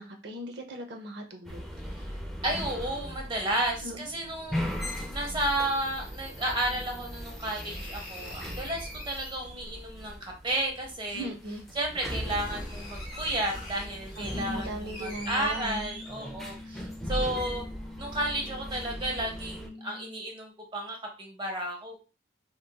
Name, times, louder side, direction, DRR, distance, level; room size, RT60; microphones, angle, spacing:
voice 1, 0.0-1.6 3.8-4.0 11.1-11.6 14.2-15.8, right 1 dB, 65° right, 4 dB, 0.6 m, -38 dB
sound 1, 1.4-19.7, equal, ahead, 0.4 m, -39 dB
voice 2, 2.4-4.7 5.1-11.3 11.7-17.7 18.0-22.0, right 1 dB, 25° right, 1 dB, 0.8 m, -32 dB
sound 2, 7.4-9.8 11.1-11.2 11.8-11.9 12.2-16.6 17.0-17.1, left 1 dB, 30° left, 1.1 m, -44 dB
sound 3, 15.4-20.3, left 2 dB, 45° left, 0.8 m, -46 dB
3.0 x 2.5 x 2.2 m, 0.31 s
head